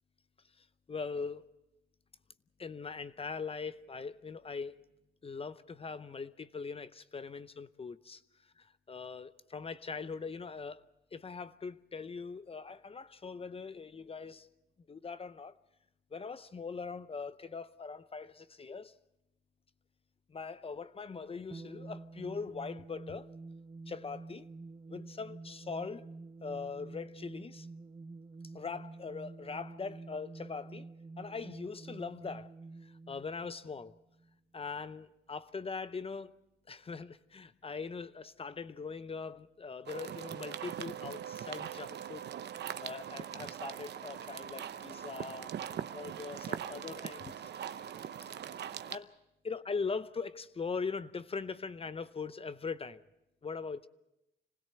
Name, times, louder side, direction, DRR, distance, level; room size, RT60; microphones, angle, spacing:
voice 1, 0.6-1.5 2.6-4.8 5.2-8.2 8.6-10.8 11.1-14.5 14.9-15.6 16.1-18.9 20.3-23.3 23.9-24.5 24.9-26.1 26.4-27.7 28.5-30.9 31.2-32.5 32.8-33.9 34.5-36.3 36.7-42.3 42.8-45.5 45.9-47.3 48.9-49.1 49.4-53.0 53.4-53.9, left 5 dB, 30° left, 0.7 m, -41 dB
sound 1, 21.5-34.3, right 3 dB, 25° right, 0.8 m, -49 dB
sound 2, 39.9-49.0, right 9 dB, 60° right, 0.8 m, -41 dB
26.5 x 17.0 x 6.8 m
cardioid pair, 90°, 20 cm